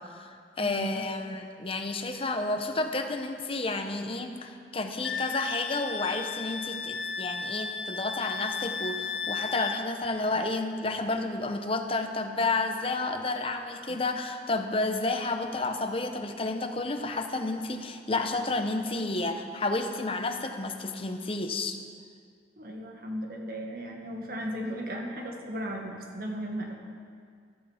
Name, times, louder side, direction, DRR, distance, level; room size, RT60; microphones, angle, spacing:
voice 1, 0.0-21.8, left 2 dB, 30° left, 6 dB, 0.9 m, -31 dB
voice 2, 0.6-1.0 22.6-26.7, equal, 55° right, 1 dB, 1.8 m, -36 dB
Wind instrument woodwind instrument, 5.0-9.8, left 5 dB, 60° left, 0.7 m, -34 dB
13.5 x 8.4 x 7.1 m, 2.1 s
head